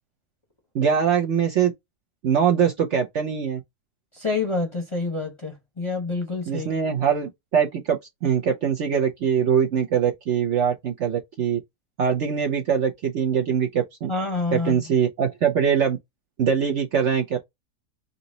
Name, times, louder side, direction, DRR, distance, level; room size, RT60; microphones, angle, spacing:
voice 1, 0.7-1.7 2.2-3.6 6.5-11.6 12.0-14.1 14.5-16.0 16.4-17.4, right 7 dB, 60° right, 0.9 m, -22 dB
voice 2, 4.1-6.7 14.1-14.9, left 3 dB, 25° left, 0.8 m, -27 dB
3.9 x 2.9 x 3.8 m
omnidirectional pair, 1.7 m